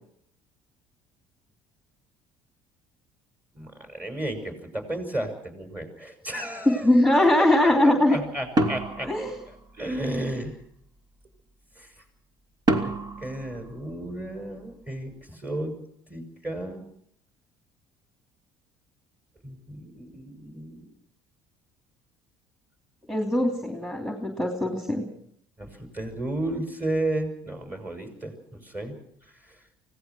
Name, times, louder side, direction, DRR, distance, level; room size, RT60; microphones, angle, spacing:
voice 1, 3.5-6.9 7.4-9.1 9.8-10.6 11.8-11.9 12.8-12.9 13.2-15.7 16.1-16.8 19.4-20.8 25.6-28.9 29.4-29.6, right 1 dB, 15° right, 6 dB, 6.3 m, -33 dB
voice 2, 6.7-8.2 9.0-9.3 23.1-25.0, left 1 dB, ahead, 4 dB, 3.0 m, -21 dB
sound 1, 8.6-10.1 12.7-14.5, right 1 dB, 40° right, 2.7 m, -28 dB
25.0 x 17.5 x 6.2 m, 0.69 s
cardioid pair, 110°, 10 cm